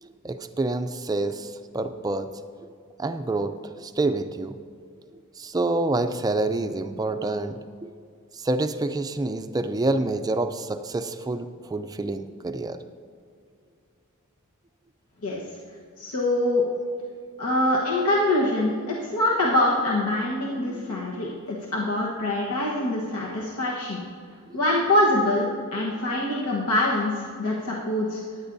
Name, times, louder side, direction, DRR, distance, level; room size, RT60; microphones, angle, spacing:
voice 1, 0.0-2.3 3.0-4.6 5.4-7.9 8.3-12.8 20.7-21.0, right 2 dB, 15° right, 9 dB, 0.4 m, -27 dB
voice 2, 16.0-16.6 17.4-24.0 24.5-28.2, left 1 dB, 85° left, -4 dB, 1.2 m, -24 dB
15.0 x 10.5 x 2.7 m, 2.3 s
head